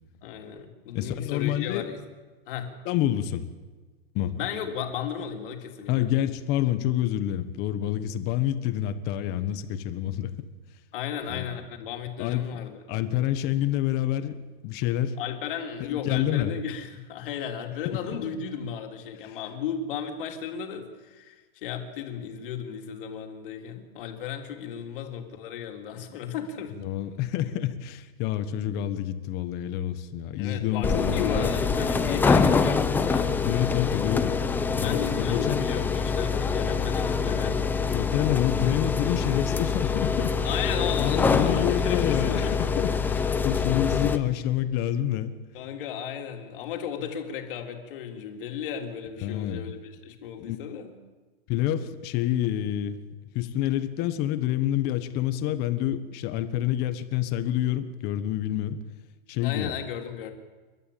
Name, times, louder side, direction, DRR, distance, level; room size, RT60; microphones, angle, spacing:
voice 1, 0.2-2.0 2.5-2.7 4.3-6.1 10.9-12.8 15.2-26.8 30.4-33.3 34.8-37.6 40.4-42.5 43.8-43.9 45.5-51.0 59.4-60.3, left 8 dB, 55° left, 3 dB, 3.5 m, -34 dB
voice 2, 0.9-1.8 2.8-3.5 4.1-4.3 5.9-10.5 11.3-11.5 12.2-12.5 12.9-15.2 15.9-16.5 17.8-18.2 26.8-31.5 33.4-34.3 34.7-35.7 37.9-40.4 41.0-45.3 49.2-49.7 50.4-50.6 51.5-53.0 53.3-58.8 59.3-59.7, left 12 dB, 30° left, 11 dB, 1.4 m, -28 dB
sound 1, 30.8-44.2, left 5 dB, 5° left, 0.7 m, -25 dB
30.0 x 12.5 x 8.7 m, 1.3 s
supercardioid pair, 160°, 32 cm